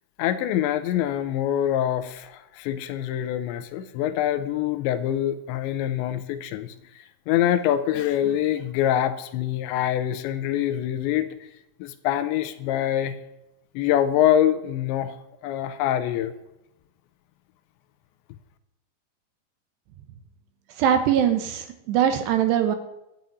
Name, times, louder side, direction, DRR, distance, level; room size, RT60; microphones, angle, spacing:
voice 1, 0.2-11.3 11.8-13.2 13.7-15.2 15.4-16.4, left 11 dB, 80° left, 11 dB, 2.9 m, -25 dB
voice 2, 20.8-22.8, right 9 dB, 75° right, 8 dB, 2.9 m, -22 dB
12.0 x 7.0 x 9.2 m, 0.89 s
omnidirectional pair, 5.5 m